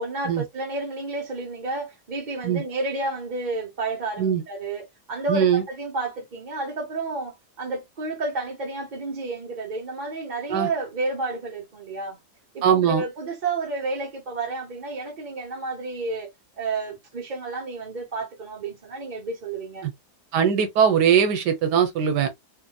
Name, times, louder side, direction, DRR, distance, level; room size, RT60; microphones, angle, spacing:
voice 1, 0.0-12.2 12.5-16.3 16.6-19.9, right 3 dB, 30° right, 1.2 m, -31 dB
voice 2, 5.3-5.6 10.5-10.7 12.6-13.0 19.8-19.9 20.3-22.3, right 8 dB, 85° right, 1.3 m, -20 dB
3.1 x 2.8 x 2.2 m
omnidirectional pair, 1.8 m